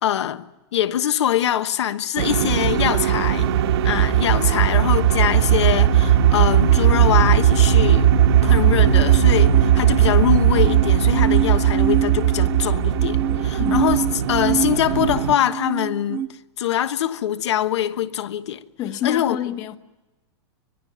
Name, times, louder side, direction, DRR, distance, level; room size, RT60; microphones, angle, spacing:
voice 1, 0.0-3.5 3.8-8.1 8.4-16.2 16.6-18.6 19.0-19.4, left 11 dB, 75° left, 1.2 m, -23 dB
sound 1, 2.2-15.4, right 10 dB, 65° right, 1.6 m, -18 dB
sound 2, 6.6-16.3, right 10 dB, 15° right, 0.9 m, -28 dB
voice 2, 18.8-19.8, left 10 dB, 25° left, 1.2 m, -27 dB
24.5 x 19.5 x 9.4 m
supercardioid pair, 170°, 14 cm